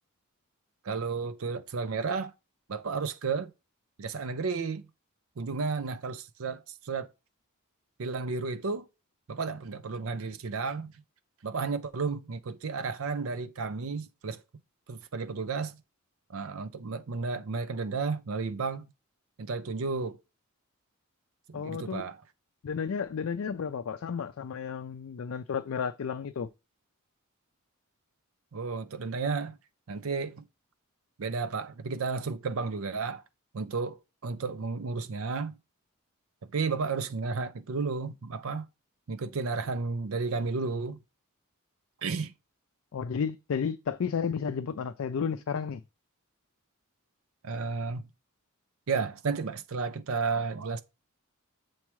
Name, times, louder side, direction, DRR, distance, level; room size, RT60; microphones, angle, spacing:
voice 1, 0.8-2.3 2.7-3.5 4.0-4.9 5.4-7.1 8.0-8.9 9.3-10.9 11.4-14.4 14.9-15.8 16.3-18.9 19.4-20.2 21.5-22.2 28.5-29.6 29.9-30.4 31.2-33.2 33.5-35.6 36.4-38.7 39.1-41.0 42.0-42.3 47.4-48.0 48.9-50.8, right 4 dB, 70° right, 0.5 m, -32 dB
voice 2, 21.5-22.0 22.6-26.5 42.9-45.8, left 6 dB, 65° left, 0.4 m, -32 dB
7.2 x 4.5 x 3.1 m
head